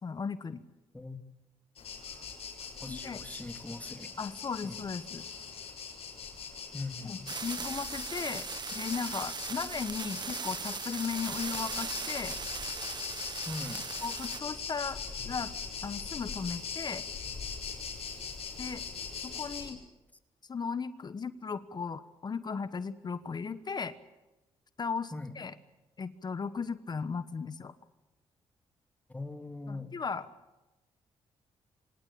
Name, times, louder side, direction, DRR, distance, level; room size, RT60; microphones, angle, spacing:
voice 1, 0.0-0.6 2.9-3.2 4.2-5.3 7.0-12.4 14.0-15.0 15.2-15.5 15.8-17.0 18.6-18.8 19.2-19.8 20.5-23.9 24.8-25.5 26.0-27.7 29.7-30.3, left 5 dB, 40° left, 13 dB, 1.2 m, -36 dB
sound 1, 1.8-19.7, left 6 dB, 70° left, 6.7 m, -41 dB
voice 2, 2.8-4.1 4.6-4.8 6.7-7.3 13.5-13.9 25.1-25.3 29.1-30.0, left 2 dB, 15° left, 7 dB, 2.6 m, -41 dB
sound 2, 7.3-14.4, right 6 dB, 40° right, 1.0 m, -39 dB
25.5 x 18.5 x 8.7 m, 1.0 s
cardioid pair, 80°, 11 cm